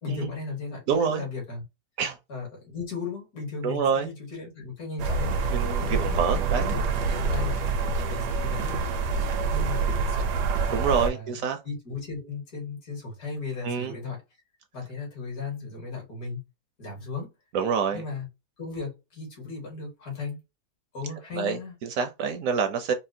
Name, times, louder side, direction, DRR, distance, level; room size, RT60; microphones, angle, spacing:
voice 1, 0.0-1.6 2.3-6.1 6.5-8.9 9.4-10.4 10.8-11.4 11.6-14.2 14.7-16.4 16.8-17.3 17.9-18.3 18.6-20.4 20.9-21.7, left 4 dB, 65° left, 2.2 m, -36 dB
voice 2, 0.9-1.2 2.0-2.2 3.6-4.1 5.5-6.8 10.7-11.6 13.6-14.0 17.5-18.0 21.3-22.9, right 6 dB, 70° right, 0.9 m, -27 dB
sound 1, 5.0-11.1, right 4 dB, 85° right, 1.3 m, -26 dB
4.2 x 2.1 x 2.6 m
omnidirectional pair, 1.7 m